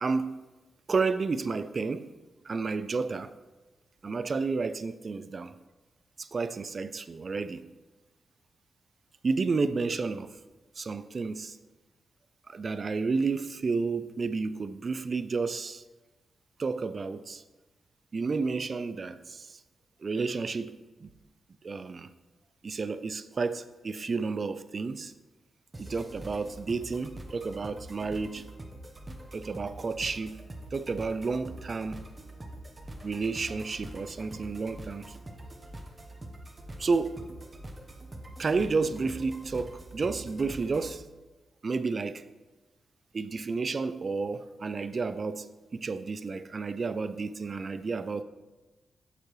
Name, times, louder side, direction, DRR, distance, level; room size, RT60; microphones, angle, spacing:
voice 1, 0.0-0.4 0.9-2.1 2.4-3.3 4.0-5.5 6.2-7.6 9.2-10.3 10.8-11.6 12.5-15.8 16.6-17.4 18.1-19.6 20.0-21.1 21.6-22.1 22.6-25.1 25.8-28.4 29.3-30.4 30.7-32.0 33.0-35.2 36.8-37.2 38.4-41.0 41.6-42.2 43.1-45.5 45.7-48.2, right 4 dB, 45° right, 0.4 m, -31 dB
sound 1, 25.7-41.0, right 1 dB, 30° right, 1.0 m, -45 dB
7.1 x 6.8 x 3.2 m
cardioid pair, 60°, 0 cm